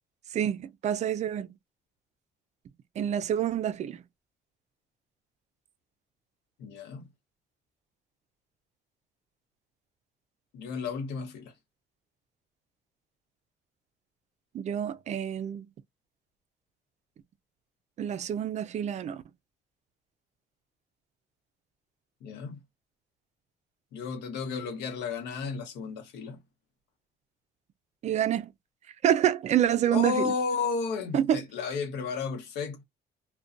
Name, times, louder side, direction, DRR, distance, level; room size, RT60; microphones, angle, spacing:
voice 1, 0.3-1.5 3.0-4.0 14.5-15.7 18.0-19.2 28.0-28.5 29.0-30.3 31.1-31.4, right 10 dB, 45° right, 0.4 m, -27 dB
voice 2, 6.6-7.1 10.5-11.5 22.2-22.6 23.9-26.4 29.9-32.8, left 5 dB, 85° left, 0.8 m, -33 dB
2.4 x 2.2 x 2.4 m
cardioid pair, 110°, 17 cm